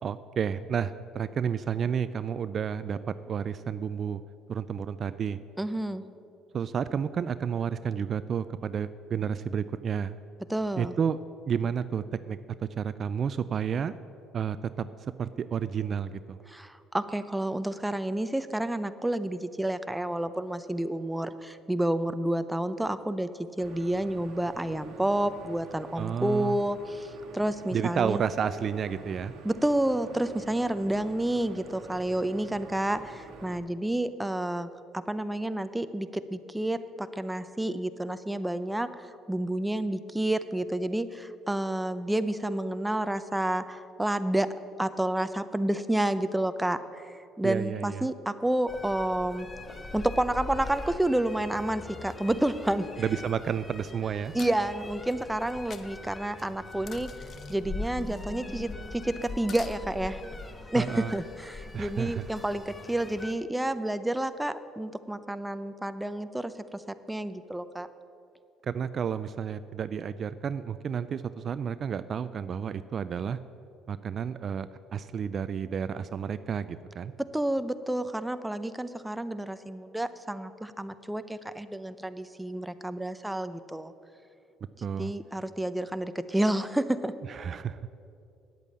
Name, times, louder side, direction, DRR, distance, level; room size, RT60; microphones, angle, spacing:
voice 1, 0.0-4.2 4.5-5.4 6.5-10.1 10.8-11.2 11.5-13.9 14.3-14.9 15.2-16.4 26.0-26.6 27.7-29.3 47.4-48.1 53.0-54.3 60.7-61.1 61.7-62.3 68.6-73.4 73.9-77.1 84.8-85.1 87.3-87.9, right 7 dB, 50° right, 13 dB, 0.4 m, -31 dB
voice 2, 5.6-6.0 10.5-10.9 16.5-23.3 23.6-28.2 29.4-34.7 34.9-47.0 47.4-49.5 49.9-52.9 54.3-57.1 57.5-60.2 60.7-66.8 67.1-67.9 77.3-83.9 85.0-87.1, right 1 dB, 10° right, 12 dB, 0.6 m, -30 dB
sound 1, 23.6-33.6, right 4 dB, 65° right, 1.3 m, -48 dB
sound 2, 48.7-63.3, left 2 dB, 20° left, 1.1 m, -42 dB
sound 3, 53.3-53.4 54.2-54.5 55.1-55.9 56.4-57.6 58.1-58.4 58.7-59.0 59.3-59.8, left 6 dB, 45° left, 0.8 m, -47 dB
9.2 x 8.2 x 8.4 m, 2.5 s
supercardioid pair, 70°, 0 cm